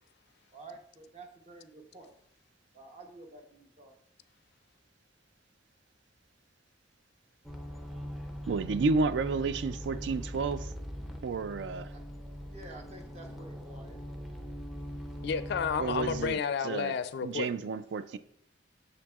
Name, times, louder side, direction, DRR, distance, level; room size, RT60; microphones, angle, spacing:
voice 1, 0.5-2.1 2.7-4.0 11.9-12.0 12.4-14.0, right 2 dB, 40° right, 0.8 m, -50 dB
sound 1, 7.4-16.3, equal, ahead, 0.4 m, -41 dB
voice 2, 8.5-10.7 11.2-11.9 15.8-16.9 17.2-18.2, right 4 dB, 70° right, 0.3 m, -31 dB
voice 3, 15.2-17.7, left 6 dB, 60° left, 0.3 m, -31 dB
7.3 x 6.2 x 2.3 m
head